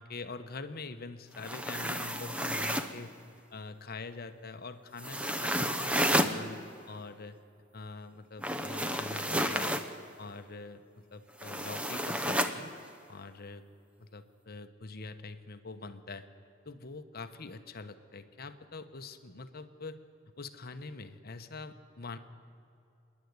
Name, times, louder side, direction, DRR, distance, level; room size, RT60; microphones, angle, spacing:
voice 1, 0.0-3.1 3.5-6.6 6.9-7.4 7.7-9.8 10.2-12.7 13.1-13.6 14.0-16.2 16.7-20.0 20.4-22.2, left 3 dB, 50° left, 9 dB, 1.0 m, -44 dB
sound 1, 1.3-3.0 5.0-6.4 8.4-9.9 11.4-12.6, equal, 5° right, 0.9 m, -31 dB
26.0 x 11.0 x 9.5 m, 2.6 s
head